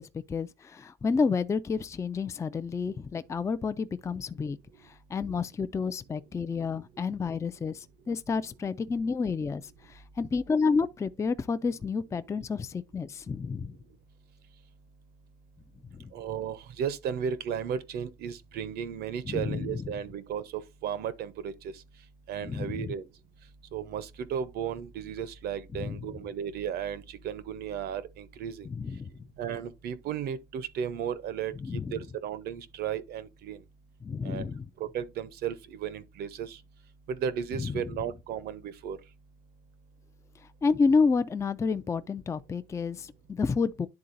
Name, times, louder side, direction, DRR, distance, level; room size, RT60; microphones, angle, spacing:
voice 1, 0.0-4.6 4.8-9.6 9.9-13.7 15.9-16.1 19.3-19.8 22.4-22.9 25.8-26.0 28.7-29.1 31.6-31.9 34.0-34.6 37.6-37.8 40.6-43.9, left 5 dB, 15° left, 0.3 m, -30 dB
voice 2, 16.1-21.7 22.3-23.0 23.7-28.7 29.4-33.6 34.2-34.5 34.8-36.6 37.1-39.0, right 8 dB, 70° right, 0.7 m, -34 dB
10.5 x 3.8 x 2.5 m
cardioid pair, 110°, 17 cm